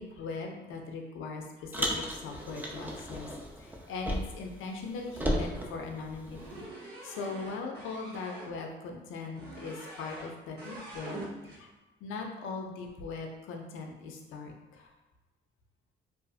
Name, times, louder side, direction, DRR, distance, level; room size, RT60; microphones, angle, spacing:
voice 1, 0.0-3.3 3.6-11.7 12.0-14.9, left 4 dB, 85° left, 2 dB, 0.5 m, -40 dB
Car, 1.7-4.5 4.8-6.6, equal, 10° right, 0.4 m, -35 dB
sound 1, 6.3-8.5 9.3-10.3 10.6-11.6, right 2 dB, 55° right, 0.8 m, -44 dB
2.6 x 2.4 x 2.3 m, 1.1 s
cardioid pair, 90°, 20 cm